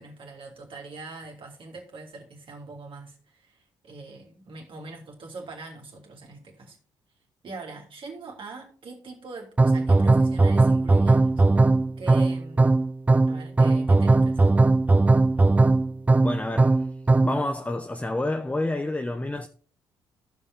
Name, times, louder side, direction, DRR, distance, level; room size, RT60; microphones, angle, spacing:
voice 1, 0.0-6.8 7.4-11.4 12.0-12.9 13.3-14.6, right 3 dB, 55° right, 3.1 m, -42 dB
sound 1, 9.6-17.4, right 3 dB, 15° right, 0.4 m, -19 dB
voice 2, 16.2-16.9 17.2-19.5, left 2 dB, 15° left, 1.0 m, -28 dB
15.0 x 5.6 x 3.8 m
hypercardioid pair, 50°, 11 cm